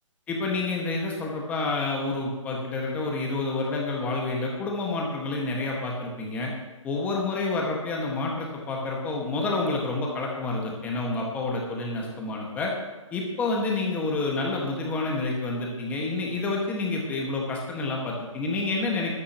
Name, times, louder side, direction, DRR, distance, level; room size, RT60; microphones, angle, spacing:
voice 1, 0.3-6.5 6.8-12.7 13.1-19.2, left 3 dB, 10° left, -1 dB, 1.6 m, -28 dB
21.0 x 9.8 x 3.0 m, 1.2 s
hypercardioid pair, 160°, 17 cm